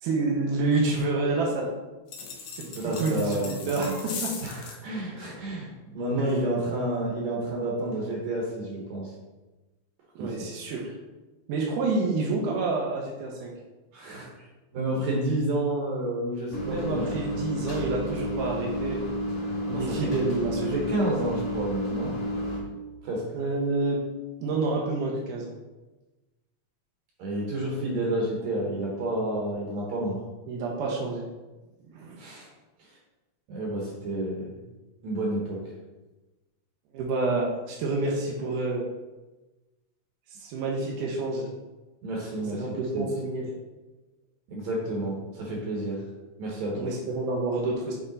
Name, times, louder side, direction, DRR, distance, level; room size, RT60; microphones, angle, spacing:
voice 1, 0.0-1.7 2.6-4.3 10.2-10.9 11.5-13.5 16.6-19.0 19.7-20.8 23.3-24.0 24.4-25.5 30.5-31.3 31.9-32.2 36.9-38.8 40.3-41.5 42.5-43.5 46.8-47.9, right 3 dB, 90° right, -2 dB, 2.4 m, -28 dB
sound 1, 2.1-4.8, left 5 dB, 70° left, 1.7 m, -39 dB
voice 2, 2.8-3.7 4.4-9.1 10.2-10.5 13.9-14.5 14.7-17.1 19.7-20.1 20.7-22.2 23.0-23.3 27.2-30.2 32.2-32.5 33.5-34.5 35.0-35.6 42.0-43.1 44.5-46.0 46.4-46.9, right 1 dB, 70° right, -2 dB, 2.3 m, -30 dB
sound 2, 16.5-22.6, equal, 40° left, 1.7 m, -31 dB
7.6 x 3.3 x 3.9 m, 1.1 s
omnidirectional pair, 3.5 m